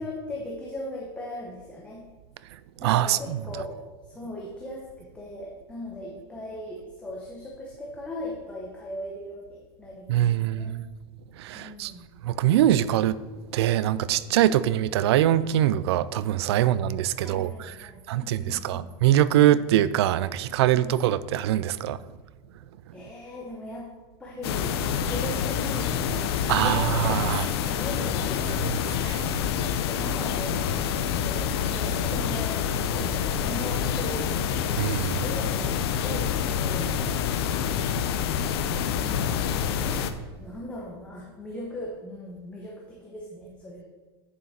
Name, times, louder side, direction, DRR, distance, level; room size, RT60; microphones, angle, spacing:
voice 1, 0.0-2.1 2.8-10.8 11.5-12.1 16.5-16.7 17.1-18.9 20.7-21.0 22.9-23.9 24.2-27.2 27.5-28.9 29.2-34.5 35.1-37.2 38.8-39.5 40.4-43.8, left 1 dB, 10° left, 1.0 m, -39 dB
voice 2, 2.8-3.4 10.1-10.8 11.4-11.9 12.2-17.7 18.1-22.0 26.5-27.5 29.1-29.3 34.8-35.2, right 12 dB, 90° right, 0.4 m, -23 dB
sound 1, 24.4-40.1, left 8 dB, 75° left, 0.7 m, -27 dB
8.8 x 7.0 x 4.3 m
supercardioid pair, 170°, 13 cm